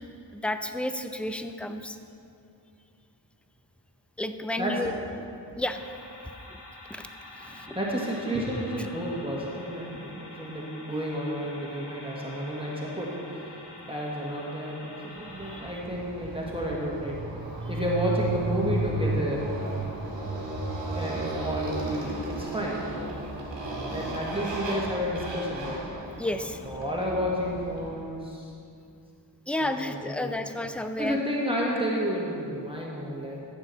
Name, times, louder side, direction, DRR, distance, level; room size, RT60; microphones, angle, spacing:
voice 1, 0.3-2.0 4.2-4.9 5.6-5.8 6.5-6.6 6.9-7.1 7.4-7.7 15.5-15.6 26.2-26.6 29.5-31.2, left 1 dB, 5° left, 8 dB, 0.5 m, -31 dB
sound 1, 5.6-15.8, left 2 dB, 65° left, 1.7 m, -46 dB
voice 2, 7.4-17.2 17.7-19.5 20.9-22.8 23.9-25.8 26.6-28.5 29.6-30.3 31.0-33.4, equal, 10° right, -4 dB, 1.5 m, -31 dB
Motorcycle, 15.2-27.9, right 2 dB, 80° right, 2.1 m, -34 dB
13.5 x 7.1 x 4.1 m, 2.5 s
wide cardioid pair, 75°, 43 cm